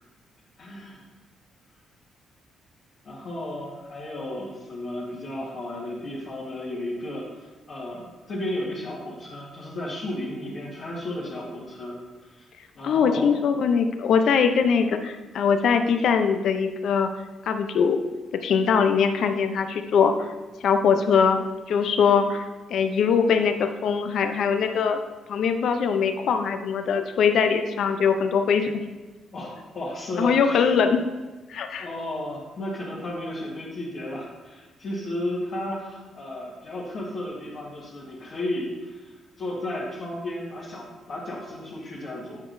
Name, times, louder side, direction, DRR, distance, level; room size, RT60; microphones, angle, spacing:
voice 1, 0.6-1.0 3.0-12.5 12.7-13.4 29.3-30.6 31.8-42.4, left 1 dB, 50° left, -7 dB, 1.4 m, -34 dB
voice 2, 12.8-17.1 17.5-18.0 18.4-20.3 20.6-25.0 25.3-28.7 30.2-31.0 31.5-31.9, left 6 dB, 70° left, 7 dB, 0.4 m, -22 dB
8.2 x 5.0 x 2.5 m, 1.2 s
cardioid pair, 90°, 0 cm